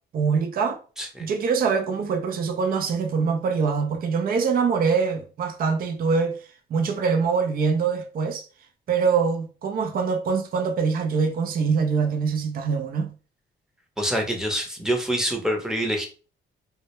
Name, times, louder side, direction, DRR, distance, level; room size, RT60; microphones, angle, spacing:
voice 1, 0.1-0.8 1.2-6.4 6.7-8.5 8.9-13.1, right 5 dB, 45° right, 0.5 m, -24 dB
voice 2, 14.0-16.1, equal, 5° right, 0.7 m, -26 dB
2.2 x 2.1 x 2.9 m
cardioid pair, 90°, 20 cm